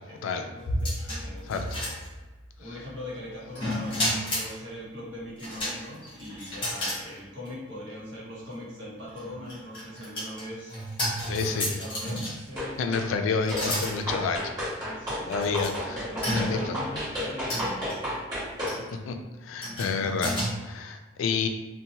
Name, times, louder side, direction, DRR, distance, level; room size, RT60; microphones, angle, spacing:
voice 1, 0.1-1.7 2.6-10.8 11.3-12.8 14.6-15.5 15.9-18.1, left 1 dB, 70° right, -6 dB, 0.9 m, -41 dB
sound 1, 0.6-2.5 3.6-4.5 5.4-7.0 7.5-7.6 9.1-12.6 13.4-13.9 14.7-14.8 15.4-15.7 16.2-16.8 17.5-17.9 18.7-18.9 19.6-20.5, equal, 25° left, 0.7 m, -32 dB
voice 2, 11.3-11.7 12.8-14.5 15.3-16.0 16.3-16.8 19.1-19.2 19.4-21.5, left 5 dB, 85° left, 6 dB, 0.3 m, -29 dB
sound 2, 12.6-13.1 13.5-18.8, equal, 20° right, 1.4 m, -32 dB
2.7 x 2.1 x 2.8 m, 1.2 s
head